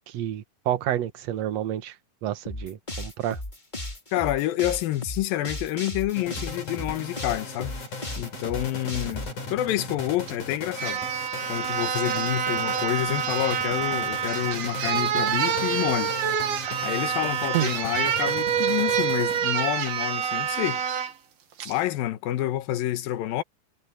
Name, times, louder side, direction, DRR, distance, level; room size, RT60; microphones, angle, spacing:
voice 1, 0.1-2.0 2.2-3.4 17.5-17.7, right 12 dB, 60° right, 1.9 m, -29 dB
sound 1, 2.4-9.3, left 1 dB, 15° left, 2.7 m, -36 dB
voice 2, 4.1-7.7 8.2-9.2 9.5-11.0 11.5-16.1 16.8-20.8 21.7-23.4, left 14 dB, 80° left, 2.8 m, -28 dB
sound 2, 6.2-19.8, left 2 dB, 55° left, 7.8 m, -38 dB
sound 3, 10.3-10.4 10.8-21.1 21.6-21.8, right 8 dB, 85° right, 4.2 m, -27 dB
omnidirectional pair, 4.2 m